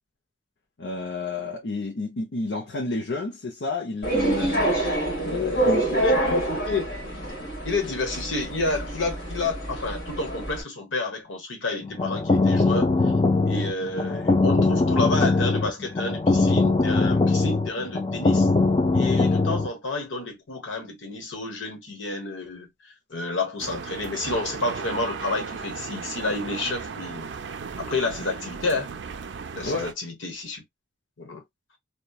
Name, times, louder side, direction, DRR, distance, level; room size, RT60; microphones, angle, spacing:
voice 1, 0.8-4.8 5.2-6.1 29.6-29.9, left 3 dB, 65° left, 0.7 m, -31 dB
sound 1, 4.0-10.6, right 1 dB, 50° left, 1.3 m, -27 dB
voice 2, 5.2-6.9 7.6-12.9 13.4-18.5 18.9-22.7 23.1-27.3 27.8-28.9 29.5-30.6 31.2-31.4, left 3 dB, 85° left, 1.1 m, -30 dB
sound 2, 11.8-19.7, left 3 dB, 25° left, 0.4 m, -21 dB
sound 3, 23.6-29.9, right 5 dB, 70° right, 0.4 m, -36 dB
2.9 x 2.2 x 2.2 m
head